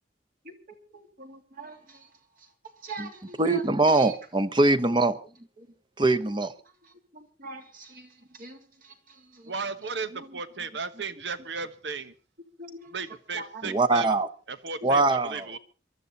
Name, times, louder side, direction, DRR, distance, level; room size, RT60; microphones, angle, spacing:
voice 1, 0.9-2.1 2.8-3.6 3.9-4.1 7.1-9.5 10.1-10.4 12.6-12.9 13.3-13.8, right 3 dB, 55° right, 3.0 m, -43 dB
voice 2, 3.4-5.2 6.0-6.5 13.6-14.3 14.8-15.5, right 2 dB, 25° right, 1.0 m, -22 dB
voice 3, 9.5-12.1 12.9-14.1 14.5-15.6, right 4 dB, 80° right, 1.2 m, -35 dB
23.0 x 13.0 x 4.1 m
head